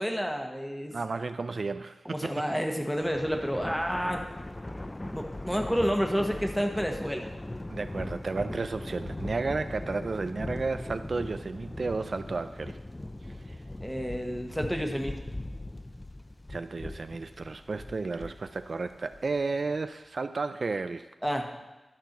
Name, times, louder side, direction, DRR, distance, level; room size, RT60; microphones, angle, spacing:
voice 1, 0.0-0.9 2.0-4.2 5.1-7.3 13.8-15.2 21.2-21.6, equal, 5° left, 3 dB, 1.1 m, -30 dB
voice 2, 0.9-2.3 7.7-12.8 13.2-13.6 16.5-21.1, right 3 dB, 55° right, 10 dB, 0.3 m, -33 dB
Thunder, 2.9-19.6, left 1 dB, 20° left, 0.4 m, -40 dB
11.5 x 4.5 x 6.6 m, 1.1 s
wide cardioid pair, 100°, 0 cm